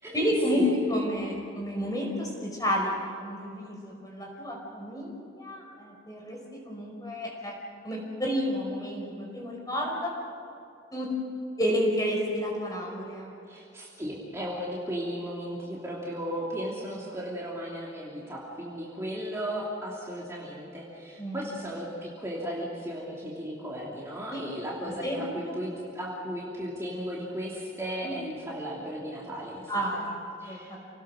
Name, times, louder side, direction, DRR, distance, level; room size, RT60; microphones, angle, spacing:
voice 1, 0.1-0.6 0.9-6.4 6.6-7.6 7.8-10.1 10.9-11.1 11.6-13.3 21.2-21.4 24.3-24.4 25.0-25.5 28.0-28.1 29.7-30.8, equal, 20° left, -1 dB, 5.5 m, -31 dB
voice 2, 13.5-29.7 30.4-30.7, equal, 15° right, -5 dB, 3.1 m, -35 dB
29.0 x 19.5 x 6.6 m, 2.6 s
head